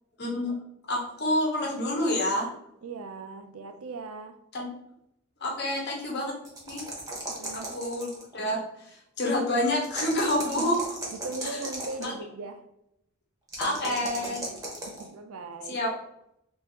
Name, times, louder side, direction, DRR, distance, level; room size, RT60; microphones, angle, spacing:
voice 1, 0.2-0.5 0.9-2.5 4.5-4.7 5.4-6.3 6.7-6.8 7.2-7.3 7.7-10.8 12.0-12.1 13.6-14.4 15.7-15.9, left 1 dB, 50° left, -2 dB, 1.0 m, -28 dB
voice 2, 2.8-4.4 7.3-7.7 10.4-10.8 11.1-12.6 13.6-15.8, right 3 dB, 90° right, 8 dB, 0.4 m, -39 dB
sound 1, 6.4-8.3 9.8-12.1 13.5-15.1, right 2 dB, 15° right, 0.7 m, -36 dB
3.6 x 2.6 x 2.8 m, 0.78 s
head